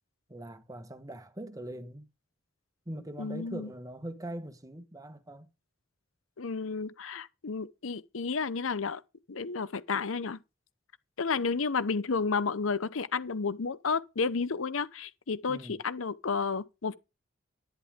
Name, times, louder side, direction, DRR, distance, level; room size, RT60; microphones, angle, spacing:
voice 1, 0.3-2.1 2.9-5.5 15.5-15.8, right 1 dB, 15° right, 1.4 m, -42 dB
voice 2, 3.2-3.7 6.4-9.0 9.3-10.4 11.2-16.9, left 4 dB, 80° left, 0.8 m, -31 dB
11.0 x 10.5 x 3.7 m
head